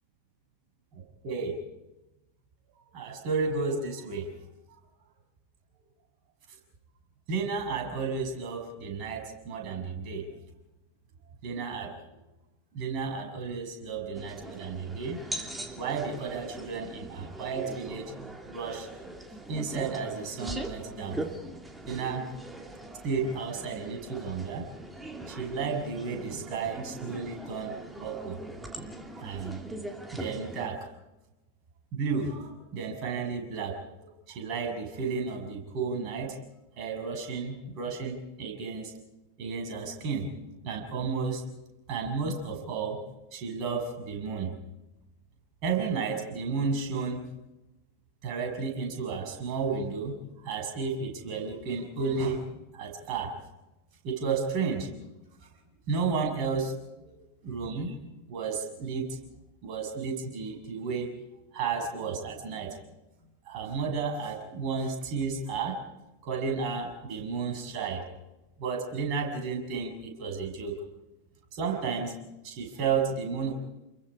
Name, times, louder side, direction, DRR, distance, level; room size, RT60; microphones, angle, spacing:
voice 1, 0.9-1.6 2.9-4.3 7.3-10.3 11.4-12.0 12.7-15.2 15.7-18.1 18.5-18.9 19.5-21.2 21.9-22.3 23.0-24.7 25.3-28.4 29.2-29.6 30.1-30.9 31.9-36.4 36.8-38.9 39.4-40.3 40.6-41.5 41.9-43.0 43.3-44.5 45.6-47.3 48.2-50.2 50.4-53.3 54.0-54.9 55.9-57.1 57.4-57.9 58.3-59.2 59.6-61.1 61.5-62.8 63.4-65.8 66.2-68.1 68.6-70.8 71.5-72.1 72.4-73.5, right 5 dB, 40° right, 3 dB, 6.4 m, -32 dB
sound 1, 14.1-30.7, right 1 dB, 10° right, 2.8 m, -41 dB
29.5 x 22.5 x 5.0 m, 1.0 s
figure-of-eight pair, 90°, 0 cm